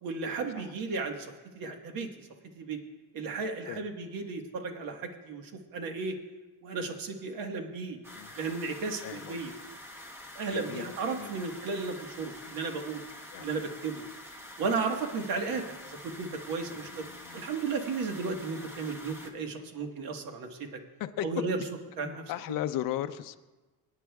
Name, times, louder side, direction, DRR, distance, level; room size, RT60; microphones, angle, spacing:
voice 1, 0.0-2.3 2.5-2.8 3.1-6.2 6.6-8.0 8.4-9.5 10.3-13.0 13.4-14.0 14.6-17.1 17.3-20.8 21.2-21.6 22.0-22.2, right 4 dB, 60° right, 4 dB, 1.5 m, -34 dB
sound 1, 8.0-19.3, left 1 dB, 5° right, 1.2 m, -47 dB
voice 2, 9.0-9.4 10.5-11.3 13.3-13.5 15.4-15.6 16.7-17.4 21.0-21.4 22.0-23.4, left 12 dB, 55° left, 8 dB, 0.6 m, -36 dB
25.5 x 9.8 x 2.3 m, 1.2 s
cardioid pair, 150°, 39 cm